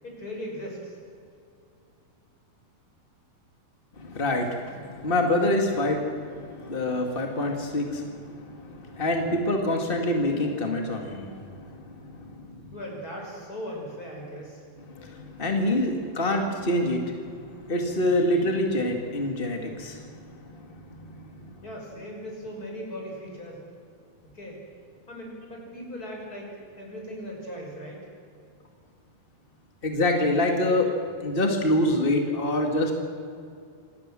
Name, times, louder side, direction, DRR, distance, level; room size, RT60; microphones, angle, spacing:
voice 1, 0.0-1.0 12.7-14.6 21.6-23.6 24.3-24.6 25.1-26.5 26.8-28.1, equal, 20° left, 0 dB, 6.1 m, -38 dB
voice 2, 4.0-12.7 14.8-21.6 29.8-30.9 31.2-32.9, left 1 dB, 40° left, 3 dB, 0.7 m, -26 dB
26.5 x 18.5 x 7.6 m, 2.4 s
omnidirectional pair, 4.7 m